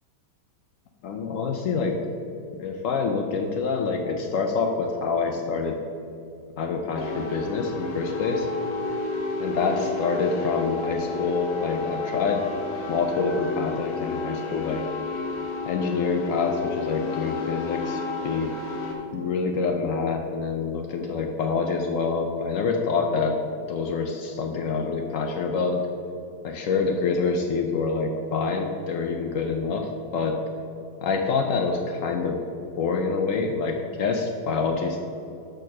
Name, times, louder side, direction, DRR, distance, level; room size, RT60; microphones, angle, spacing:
voice 1, 1.0-2.0 2.6-5.8 6.6-8.5 9.4-12.5 12.9-14.8 15.6-18.5 19.1-23.4 23.7-25.8 26.4-30.4 31.0-32.4 32.8-35.0, left 4 dB, 75° left, 3 dB, 0.7 m, -26 dB
sound 1, 7.0-18.9, left 3 dB, 55° left, 1.2 m, -31 dB
6.4 x 4.6 x 6.0 m, 2.7 s
omnidirectional pair, 1.9 m